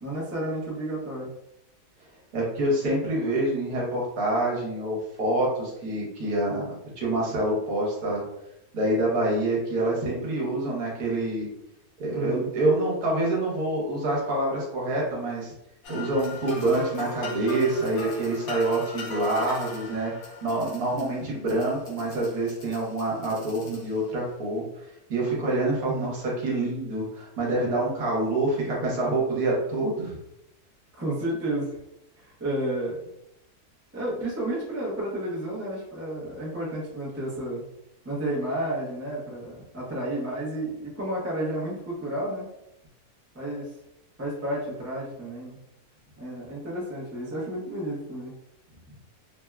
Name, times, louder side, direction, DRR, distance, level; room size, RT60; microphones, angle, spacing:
voice 1, 0.0-1.3 12.1-12.5 25.9-26.1 30.9-31.8 32.2-33.0 33.9-37.7 38.0-42.4 43.3-43.7 44.2-45.6 46.2-48.4, right 1 dB, 20° right, -6 dB, 0.4 m, -31 dB
voice 2, 2.3-8.2 8.7-11.5 12.0-15.5 15.9-20.1 20.4-24.6 25.1-30.2, right 2 dB, 70° right, -4 dB, 1.4 m, -26 dB
sound 1, 15.8-24.2, left 2 dB, 65° left, 1.1 m, -39 dB
3.4 x 2.2 x 2.3 m, 0.84 s
omnidirectional pair, 1.7 m